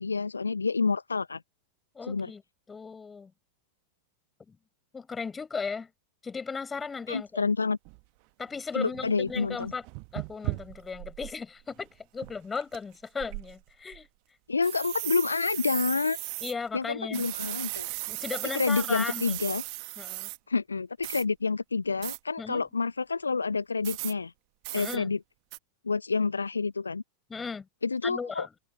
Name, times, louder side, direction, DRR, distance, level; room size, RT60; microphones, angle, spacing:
voice 1, 0.0-1.4 2.1-2.3 7.1-7.8 8.7-9.7 14.5-16.2 16.7-17.9 18.5-19.6 20.5-24.3 24.7-25.2 25.8-27.0 27.8-28.5, left 4 dB, 75° left, 0.8 m, -28 dB
voice 2, 1.9-2.4 2.7-3.3 4.5-4.6 4.9-5.9 6.2-7.5 8.4-9.8 10.1-14.1 16.4-17.3 18.1-19.6 20.0-20.3 22.4-22.6 24.7-25.1 27.3-27.7 28.0-28.6, left 5 dB, 15° left, 6.7 m, -36 dB
sound 1, 7.1-7.2 7.9-8.0 8.6-8.7 8.9-11.4 11.7-11.8 12.2-12.8 13.2-14.0 14.6-16.5 17.1-20.4 21.0-21.2 22.0-22.2 23.8-24.1 24.6-25.0 25.5-25.6, right 40 dB or more, 45° right, 1.5 m, -37 dB
figure-of-eight pair, 90°, 0 cm